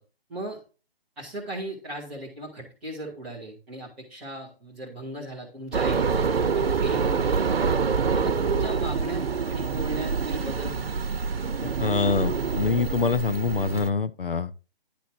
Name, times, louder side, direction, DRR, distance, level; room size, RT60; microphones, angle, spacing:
voice 1, 0.3-0.6 1.2-7.7 8.1-10.8, right 1 dB, ahead, 0.5 m, -37 dB
sound 1, 5.7-13.9, right 5 dB, 75° right, 0.8 m, -26 dB
voice 2, 11.6-14.5, left 5 dB, 65° left, 0.8 m, -25 dB
10.5 x 3.9 x 5.9 m
figure-of-eight pair, 150°, 30 cm